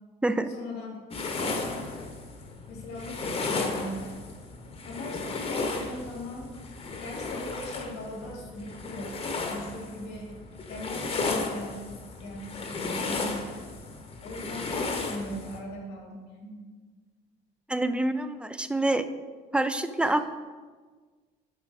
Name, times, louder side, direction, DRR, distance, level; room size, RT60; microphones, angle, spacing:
voice 1, 0.5-2.0 2.7-4.2 4.8-6.6 7.0-10.3 10.7-13.6 14.2-16.7 20.0-20.1, left 1 dB, 90° left, -1 dB, 2.3 m, -40 dB
sound 1, 1.1-15.6, left 3 dB, 35° left, 1.0 m, -34 dB
voice 2, 17.7-19.0 19.5-20.2, right 2 dB, 5° right, 10 dB, 0.4 m, -26 dB
7.4 x 5.0 x 4.8 m, 1.4 s
cardioid pair, 110°, 17 cm